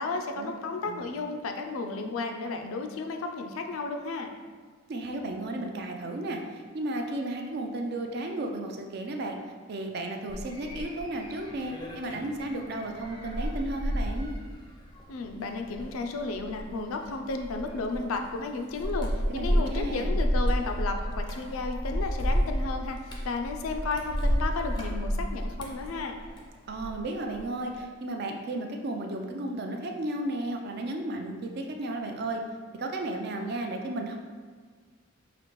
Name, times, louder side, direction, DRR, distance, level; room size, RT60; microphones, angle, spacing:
voice 1, 0.0-4.3 15.1-23.0 23.2-26.1, left 3 dB, 75° left, 5 dB, 0.4 m, -33 dB
voice 2, 4.9-9.4 9.7-14.3 19.3-20.1 26.7-32.4 32.7-34.2, right 1 dB, 50° right, 3 dB, 0.4 m, -34 dB
sound 1, 10.3-27.0 27.3-27.8, equal, 20° left, 0.4 m, -31 dB
5.0 x 2.5 x 3.0 m, 1.5 s
head